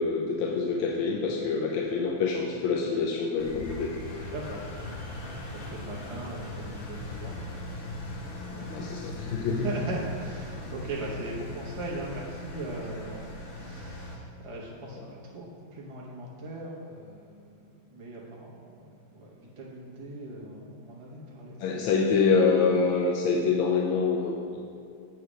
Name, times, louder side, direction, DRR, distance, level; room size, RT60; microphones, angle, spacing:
voice 1, 0.0-3.9 4.2-4.3 8.7-9.7 21.6-24.4, left 5 dB, 85° left, -1 dB, 1.4 m, -26 dB
Engine, 3.4-14.2, left 1 dB, 55° left, 0.6 m, -39 dB
voice 2, 4.3-4.6 5.0-7.5 7.9-8.2 8.5-8.7 9.5-18.8 19.1-21.6, right 1 dB, 45° right, -4 dB, 0.4 m, -39 dB
7.7 x 3.2 x 6.0 m, 2.4 s
omnidirectional pair, 2.1 m